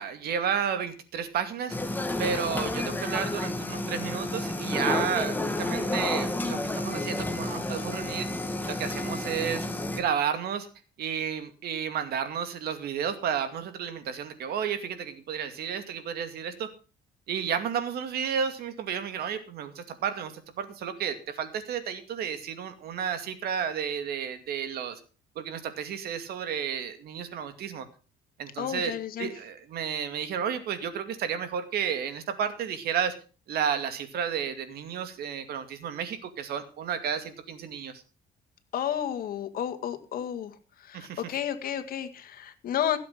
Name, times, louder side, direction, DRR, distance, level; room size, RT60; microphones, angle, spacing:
voice 1, 0.0-1.7 2.2-8.3 8.7-9.7 9.9-10.7 11.0-16.7 17.3-20.3 20.6-25.0 25.4-27.9 28.4-33.1 33.5-37.9 40.9-41.2, right 8 dB, 70° right, 9 dB, 2.3 m, -32 dB
sound 1, 1.7-10.0, left 2 dB, 10° left, 2.0 m, -30 dB
voice 2, 28.6-29.3 38.7-40.5 40.8-43.0, left 10 dB, 60° left, 9 dB, 1.9 m, -31 dB
16.5 x 7.6 x 5.8 m, 0.36 s
cardioid pair, 110°, 17 cm